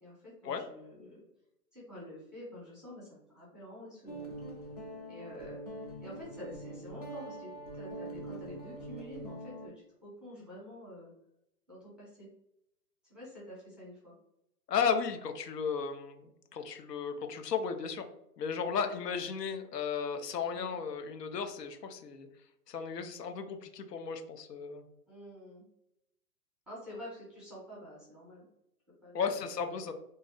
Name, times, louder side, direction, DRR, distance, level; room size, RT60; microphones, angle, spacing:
voice 1, 0.0-1.2 1.7-4.3 5.1-11.1 11.7-12.3 13.1-14.1 18.6-18.9 20.5-20.7 25.1-25.6 26.7-28.4 29.0-29.9, equal, ahead, -7 dB, 0.9 m, -48 dB
Guitar, 4.0-9.7, right 1 dB, 30° left, 0.3 m, -44 dB
voice 2, 14.7-18.1 18.4-22.3 22.7-24.8 29.1-29.9, left 6 dB, 85° left, 6 dB, 0.7 m, -34 dB
2.6 x 2.0 x 3.7 m, 0.83 s
hypercardioid pair, 135°, 47 cm